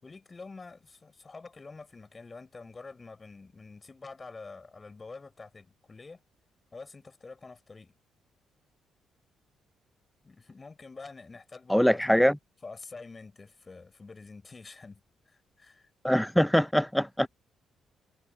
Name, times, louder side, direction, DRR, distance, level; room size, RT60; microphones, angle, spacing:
voice 1, 0.0-6.2 6.7-8.0 10.2-12.2 12.6-15.9, left 3 dB, 30° left, 4.3 m, -47 dB
voice 2, 11.7-12.4 16.0-17.3, equal, ahead, 0.4 m, -23 dB
cardioid pair, 90°, 0 cm